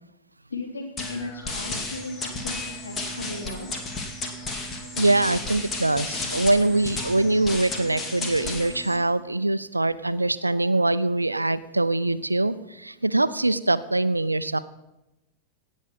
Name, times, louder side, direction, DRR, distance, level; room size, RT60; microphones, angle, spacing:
voice 1, 0.5-3.7, left 3 dB, 75° left, 2 dB, 3.2 m, -36 dB
sound 1, 1.0-9.0, left 2 dB, 25° left, 2.3 m, -33 dB
voice 2, 4.9-14.6, right 2 dB, 85° right, 15 dB, 0.6 m, -23 dB
17.5 x 6.4 x 7.2 m, 0.95 s
figure-of-eight pair, 90°, 0 cm